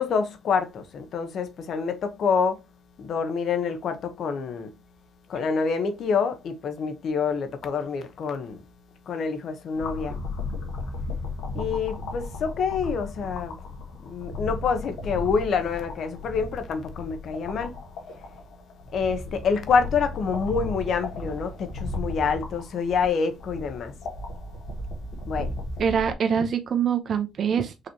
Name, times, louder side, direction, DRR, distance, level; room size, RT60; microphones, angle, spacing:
voice 1, 0.0-2.6 3.0-4.7 5.3-8.6 9.1-10.2 11.5-13.6 14.0-17.7 18.9-23.9 25.3-25.5, left 5 dB, 65° left, 0.9 m, -27 dB
sound 1, 9.8-26.1, left 2 dB, 85° left, 1.3 m, -35 dB
voice 2, 25.8-27.9, right 7 dB, 55° right, 0.7 m, -24 dB
4.9 x 3.1 x 2.7 m
cardioid pair, 90°, 0 cm